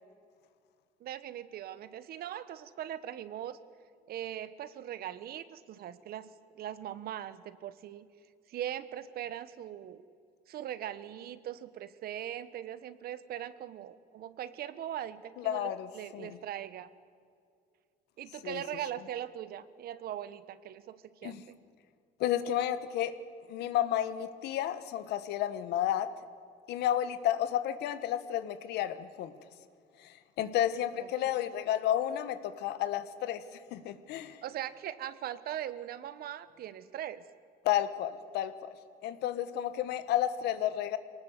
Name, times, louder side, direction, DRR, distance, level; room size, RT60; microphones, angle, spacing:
voice 1, 1.0-3.6 4.1-8.1 8.5-10.0 10.5-16.9 18.2-21.6 31.0-31.1 34.4-37.2, right 11 dB, 65° right, 15 dB, 1.2 m, -40 dB
voice 2, 15.4-16.4 18.4-18.6 21.2-21.4 22.2-23.2 23.5-26.1 26.7-29.3 30.0-33.4 33.7-34.4 37.6-38.7 39.0-41.0, left 11 dB, 85° left, 13 dB, 1.3 m, -31 dB
23.0 x 19.0 x 8.2 m, 2.3 s
cardioid pair, 110°, 17 cm